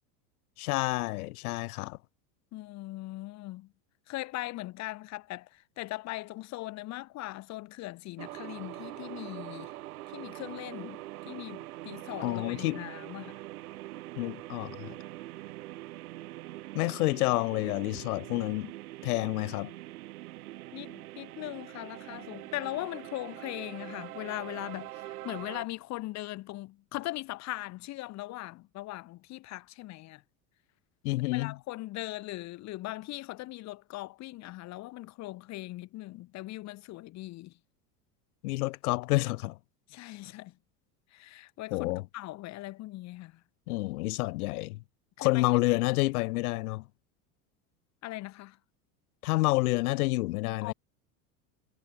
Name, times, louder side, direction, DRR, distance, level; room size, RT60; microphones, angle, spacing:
voice 1, 0.6-2.0 12.2-12.8 14.2-14.9 16.7-18.7 19.0-19.7 31.0-31.6 38.4-39.6 41.7-42.0 43.7-44.8 45.2-46.8 49.2-50.7, left 21 dB, 85° left, 1.4 m, -29 dB
voice 2, 2.5-3.7 4.1-9.7 10.1-11.0 11.3-13.4 20.7-30.2 31.3-37.5 39.9-40.6 41.1-43.4 45.2-45.8 48.0-48.6 50.6-50.7, left 18 dB, 40° left, 0.8 m, -40 dB
sound 1, 8.2-25.6, right 17 dB, 90° right, 3.6 m, -43 dB
supercardioid pair, 125°, 43 cm